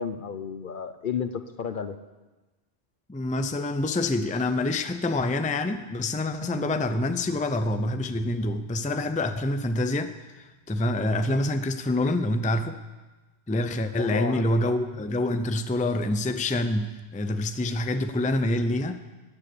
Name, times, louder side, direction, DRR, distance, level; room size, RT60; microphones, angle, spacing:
voice 1, 0.0-2.0 14.0-14.5, left 6 dB, 55° left, 10 dB, 0.8 m, -32 dB
voice 2, 3.1-12.8 13.5-19.0, left 1 dB, 10° left, 9 dB, 0.5 m, -26 dB
sound 1, 6.4-10.2, left 5 dB, 80° left, 1.4 m, -46 dB
16.0 x 9.5 x 6.8 m, 1.2 s
omnidirectional pair, 1.1 m